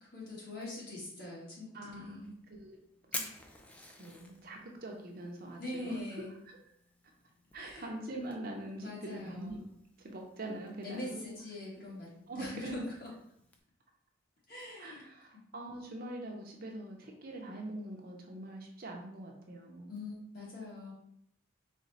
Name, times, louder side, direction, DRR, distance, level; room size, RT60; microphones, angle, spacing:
voice 1, 0.0-2.3 5.6-6.3 7.5-7.9 8.8-9.7 10.8-13.1 14.5-15.1 15.3-15.4 19.9-20.9, left 2 dB, 50° left, -6 dB, 1.5 m, -43 dB
voice 2, 1.7-2.8 4.0-6.0 7.5-9.6 10.0-11.4 12.3-12.8 14.8-20.0, right 1 dB, 50° right, 1 dB, 0.6 m, -43 dB
Fire, 2.1-13.6, left 1 dB, 5° left, 0.3 m, -51 dB
4.1 x 2.1 x 4.0 m, 0.73 s
head